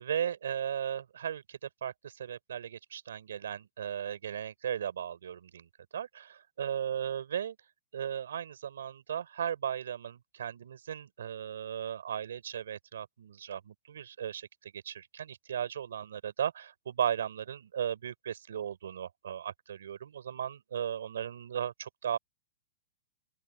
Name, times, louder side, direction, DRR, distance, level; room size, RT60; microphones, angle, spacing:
voice 1, 0.0-7.6 7.9-22.2, right 9 dB, 90° right, 5.2 m, -36 dB
open air
hypercardioid pair, 160°, 0 cm